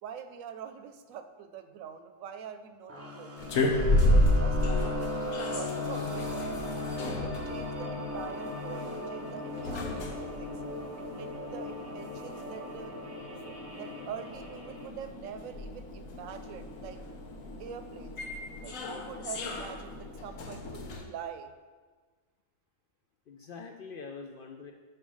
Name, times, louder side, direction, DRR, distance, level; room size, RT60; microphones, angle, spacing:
voice 1, 0.0-3.5 3.9-6.5 7.0-10.5 11.0-12.9 13.6-17.0 17.6-18.2 18.6-21.5, right 8 dB, 90° right, 9 dB, 1.0 m, -44 dB
sound 1, 2.9-14.9, left 2 dB, 10° right, 1.0 m, -37 dB
sound 2, 3.4-21.0, left 1 dB, 80° left, 1.2 m, -33 dB
voice 2, 4.5-5.0 23.3-24.7, left 5 dB, 65° left, 2 dB, 0.5 m, -45 dB
5.6 x 4.6 x 6.1 m, 1.5 s
omnidirectional pair, 1.3 m